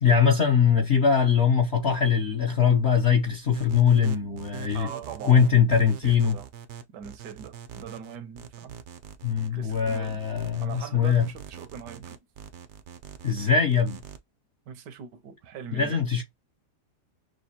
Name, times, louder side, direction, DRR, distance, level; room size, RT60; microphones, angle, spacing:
voice 1, 0.0-4.9 5.2-6.4 9.2-11.3 13.2-14.0 15.7-16.2, left 7 dB, 50° left, 0.9 m, -22 dB
sound 1, 3.5-14.2, right 9 dB, 65° right, 0.7 m, -43 dB
voice 2, 4.7-6.5 6.9-8.8 9.5-10.2 10.6-12.2 14.7-16.2, right 8 dB, 85° right, 1.4 m, -41 dB
6.3 x 2.5 x 2.8 m
omnidirectional pair, 1.8 m